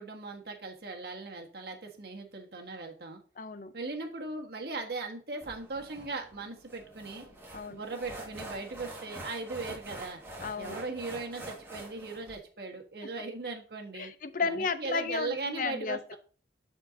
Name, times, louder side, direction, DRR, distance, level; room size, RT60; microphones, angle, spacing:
voice 1, 0.0-3.2 3.7-7.3 7.7-10.2 10.6-14.1 14.4-16.2, right 3 dB, 60° right, 1.5 m, -38 dB
voice 2, 3.4-3.7 7.5-7.8 10.4-10.8 13.9-16.2, left 4 dB, 50° left, 0.6 m, -33 dB
sound 1, 5.4-12.4, right 1 dB, 15° right, 1.8 m, -45 dB
13.0 x 4.4 x 2.7 m
head